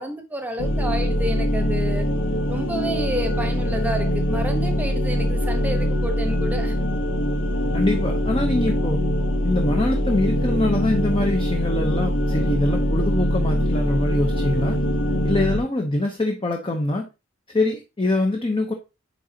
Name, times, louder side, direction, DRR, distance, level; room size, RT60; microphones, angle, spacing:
voice 1, 0.0-2.1 2.5-6.8, equal, 10° right, 1.0 m, -30 dB
sound 1, 0.6-15.6, equal, 70° left, 1.2 m, -23 dB
voice 2, 7.7-9.1 9.4-14.8 15.2-17.1 17.5-18.7, left 2 dB, 25° left, 0.7 m, -24 dB
9.3 x 3.8 x 2.8 m
head